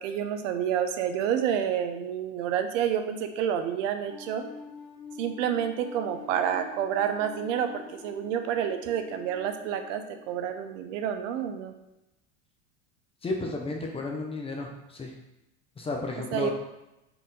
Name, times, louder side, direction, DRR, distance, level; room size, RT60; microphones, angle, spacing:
voice 1, 0.0-4.4 5.2-11.7 16.3-16.5, right 9 dB, 70° right, 7 dB, 0.6 m, -29 dB
sound 1, 4.1-10.9, left 4 dB, 45° left, 1.0 m, -46 dB
voice 2, 13.2-15.1 15.8-16.5, left 3 dB, 15° left, 1 dB, 0.5 m, -33 dB
4.3 x 2.7 x 3.7 m, 0.93 s
supercardioid pair, 115°, 38 cm